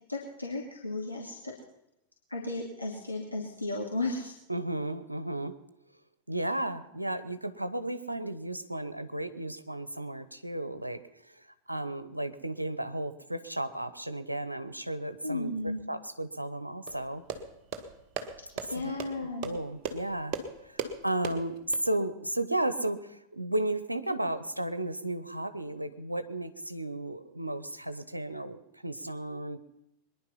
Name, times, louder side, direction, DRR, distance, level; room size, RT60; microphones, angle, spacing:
voice 1, 0.1-1.5 2.3-4.3 15.2-15.8 18.6-19.5, left 2 dB, 85° left, -3 dB, 2.5 m, -34 dB
voice 2, 4.5-5.5 6.3-11.4 11.7-15.5 15.9-17.2 18.8-20.4 20.6-29.6, right 1 dB, 85° right, 12 dB, 0.9 m, -34 dB
sound 1, 16.9-21.8, right 5 dB, 40° right, 1.7 m, -38 dB
23.0 x 10.5 x 5.7 m, 0.85 s
figure-of-eight pair, 90°, 0 cm